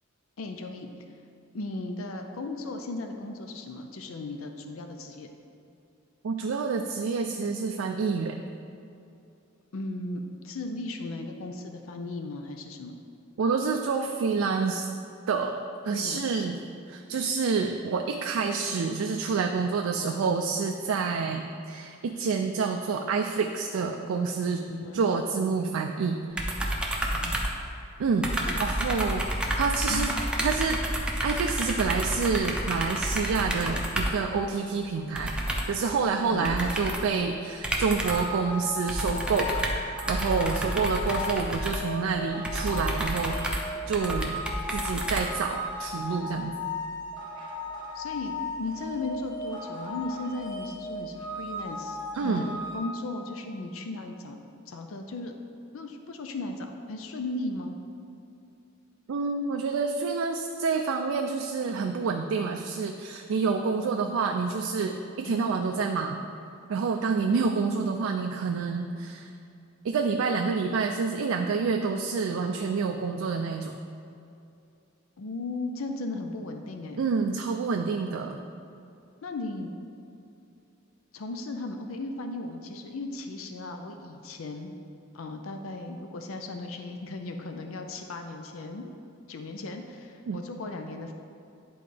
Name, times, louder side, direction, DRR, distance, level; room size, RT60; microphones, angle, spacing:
voice 1, 0.4-0.9 1.5-5.3 9.7-13.0 15.9-16.5 18.7-18.8 24.7-25.0 27.1-27.4 28.5-28.6 29.9-30.0 36.3-36.5 47.9-54.4 54.7-55.3 55.7-57.8 65.3-65.5 75.2-77.0 79.2-79.7 81.1-84.7 85.1-88.9 89.3-91.1, left 2 dB, 75° left, 5 dB, 0.5 m, -36 dB
voice 2, 6.2-8.4 13.4-14.9 15.3-16.6 16.9-24.6 24.9-26.5 28.0-29.3 29.6-30.1 30.4-30.8 31.2-35.4 35.7-39.6 40.1-44.4 44.7-46.5 47.4-47.5 52.1-52.4 59.1-66.2 66.7-69.3 69.8-73.8 77.0-78.4 90.3-90.4, right 5 dB, 75° right, 3 dB, 0.4 m, -28 dB
sound 1, 26.4-28.0 28.2-34.3 35.1-35.8 36.4-37.1 37.6-38.4 38.9-45.7, right 1 dB, 5° right, 0.6 m, -30 dB
sound 2, 38.0-52.8, left 2 dB, 20° left, 1.3 m, -36 dB
10.5 x 3.9 x 3.3 m, 2.7 s
head